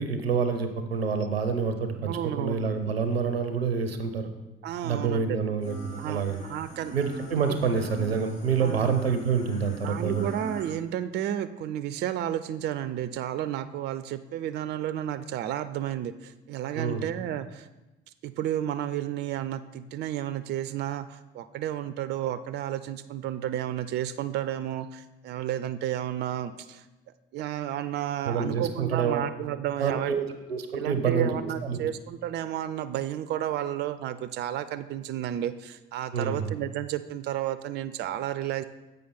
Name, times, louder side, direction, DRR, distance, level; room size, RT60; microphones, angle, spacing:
voice 1, 0.0-4.3 4.8-6.4 6.9-10.3 16.7-17.0 28.3-29.2 29.8-31.4 31.6-31.9 36.1-36.5, right 6 dB, 85° right, 8 dB, 0.5 m, -27 dB
voice 2, 2.0-2.8 4.6-5.4 6.0-7.0 7.5-7.6 8.6-9.0 9.8-17.7 18.2-26.8 27.3-30.2 30.7-38.6, right 11 dB, 35° right, 13 dB, 0.4 m, -32 dB
sound 1, 5.6-10.7, right 1 dB, 80° left, 2.3 m, -42 dB
7.6 x 5.2 x 4.1 m, 1.0 s
figure-of-eight pair, 50°, 30 cm